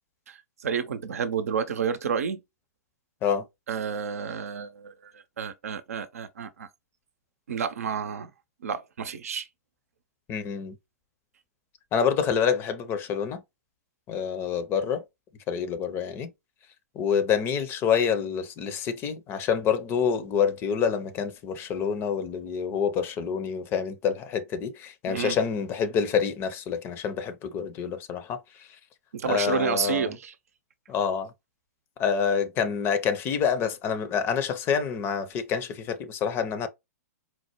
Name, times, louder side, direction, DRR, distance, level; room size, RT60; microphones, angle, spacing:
voice 1, 0.3-2.4 3.7-6.7 7.5-8.3 8.6-9.5 25.1-25.4 29.1-30.3, right 7 dB, 65° right, 0.6 m, -30 dB
voice 2, 10.3-10.8 11.9-13.4 14.1-15.0 15.5-16.3 16.9-28.7 29.3-30.1 30.9-31.3 32.0-36.7, left 7 dB, 25° left, 0.6 m, -27 dB
4.5 x 2.1 x 2.9 m
figure-of-eight pair, 110°, 9 cm